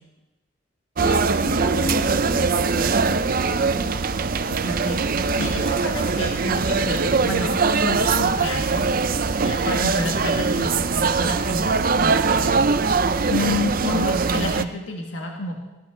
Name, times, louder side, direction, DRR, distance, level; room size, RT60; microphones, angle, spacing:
voice 1, 1.0-4.0 4.4-4.7, left 2 dB, 20° left, 0 dB, 2.1 m, -33 dB
sound 1, 1.0-14.6, right 4 dB, 45° right, 0.6 m, -22 dB
voice 2, 4.6-5.0 5.3-7.5 7.8-8.8 9.4-12.6 13.3-15.6, left 2 dB, 75° left, 0 dB, 2.0 m, -30 dB
19.0 x 16.5 x 3.9 m, 1.0 s
head